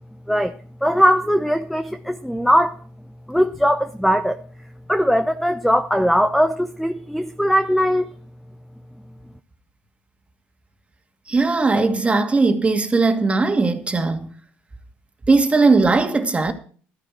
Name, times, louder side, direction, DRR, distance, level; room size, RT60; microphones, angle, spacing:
voice 1, 0.3-2.8 3.3-4.4 4.9-8.1, equal, ahead, 0.8 m, -20 dB
voice 2, 11.3-14.3 15.3-16.5, right 3 dB, 20° right, 2.3 m, -18 dB
13.0 x 10.5 x 4.5 m
supercardioid pair, 80°, 6 cm